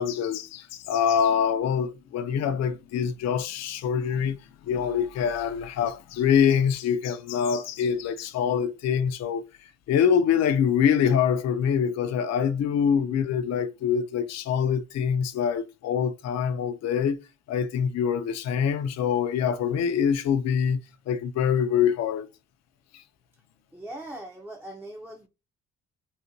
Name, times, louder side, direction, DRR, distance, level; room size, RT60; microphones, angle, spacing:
voice 1, 0.0-4.4 4.6-9.4 9.9-17.2 17.5-20.8 21.1-22.3 22.9-23.0, left 7 dB, 60° left, 0.5 m, -25 dB
voice 2, 23.7-25.3, right 1 dB, 5° right, 0.5 m, -40 dB
3.9 x 2.1 x 2.6 m
cardioid pair, 90°, 30 cm